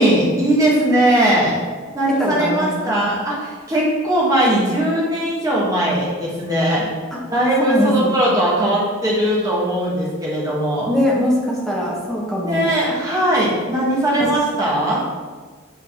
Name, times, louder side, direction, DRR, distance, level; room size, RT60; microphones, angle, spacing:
voice 1, 0.0-1.6 1.9-6.8 7.3-10.9 12.4-15.0, right 1 dB, 15° right, -5 dB, 1.5 m, -19 dB
voice 2, 2.2-3.1 7.6-8.2 10.9-12.7 14.2-14.3, left 1 dB, ahead, -5 dB, 1.2 m, -21 dB
8.8 x 4.0 x 3.6 m, 1.5 s
head